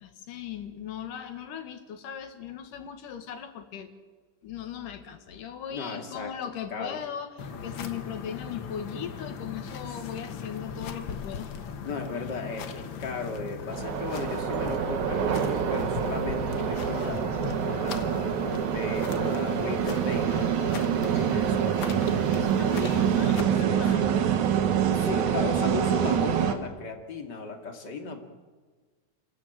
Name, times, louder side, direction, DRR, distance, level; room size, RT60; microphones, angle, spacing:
voice 1, 0.0-3.9 4.4-11.5 22.3-24.1, left 8 dB, 75° left, 7 dB, 3.3 m, -38 dB
voice 2, 5.7-6.3 6.7-7.0 9.8-10.0 11.8-21.9 23.6-24.3 24.8-28.2, left 4 dB, 35° left, 3 dB, 2.7 m, -36 dB
sound 1, 7.4-23.4, left 6 dB, 55° left, 1.4 m, -39 dB
sound 2, 13.7-26.5, right 8 dB, 70° right, 2.6 m, -26 dB
29.0 x 13.5 x 9.1 m, 1.4 s
omnidirectional pair, 3.7 m